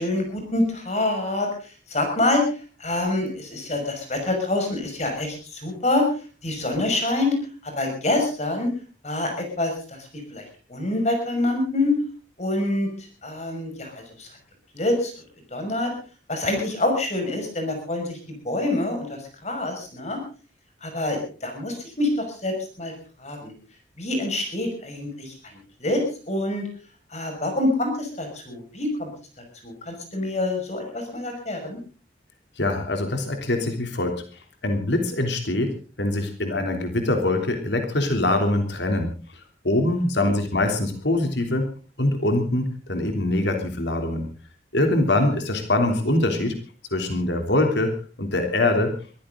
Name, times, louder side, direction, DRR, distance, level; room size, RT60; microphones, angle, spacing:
voice 1, 0.0-6.0 6.4-7.3 7.6-8.7 9.0-10.0 10.3-10.4 10.7-11.9 12.4-12.9 13.2-14.3 14.7-15.1 15.5-15.9 16.3-18.2 18.4-20.2 20.8-22.9 23.2-23.5 24.0-25.5 25.8-26.6 27.1-29.1 29.6-31.8 40.2-40.3, left 2 dB, 40° left, 4 dB, 5.9 m, -26 dB
voice 2, 32.6-34.2 34.6-35.7 36.0-39.1 39.6-41.7 42.0-44.3 44.7-46.5 46.9-47.9 48.2-48.9, left 2 dB, 75° left, 5 dB, 3.4 m, -23 dB
23.0 x 15.0 x 3.9 m, 0.38 s
head